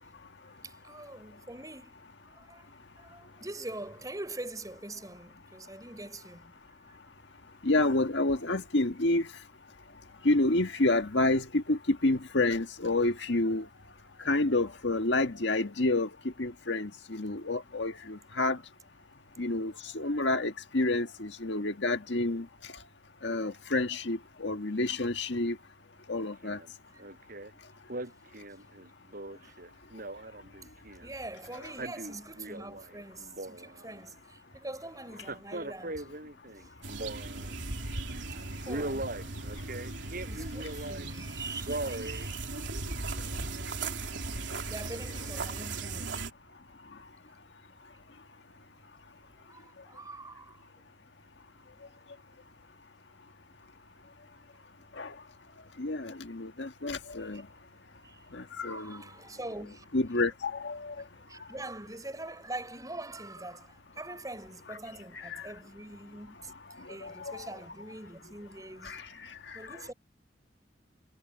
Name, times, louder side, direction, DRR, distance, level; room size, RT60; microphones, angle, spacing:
voice 1, 0.5-6.6 26.9-27.0 29.4-29.6 31.0-36.1 36.6-36.7 38.3-38.4 38.6-39.2 40.2-42.6 44.7-46.2 49.5-50.7 57.2-57.4 58.0-58.2 58.6-59.9 61.3-66.5 66.8-69.0 69.5-69.9, right 2 dB, 20° right, 6.6 m, -44 dB
voice 2, 7.6-9.3 10.2-13.7 14.3-16.1 16.4-18.6 19.4-22.5 23.2-25.6 26.1-26.6 55.0-55.1 55.8-57.4 58.3-59.0 59.9-60.9 67.0-67.4 68.9-69.0, left 2 dB, 75° left, 1.7 m, -29 dB
Male speech man speaking, 26.4-26.7 27.0-27.5 27.9-31.1 31.6-32.9 33.2-34.0 35.2-37.6 38.0-38.2 38.7-41.1 41.5-42.3 42.7-42.8, right 2 dB, 50° right, 7.8 m, -39 dB
sound 1, 36.8-46.3, right 3 dB, 80° right, 3.2 m, -37 dB
head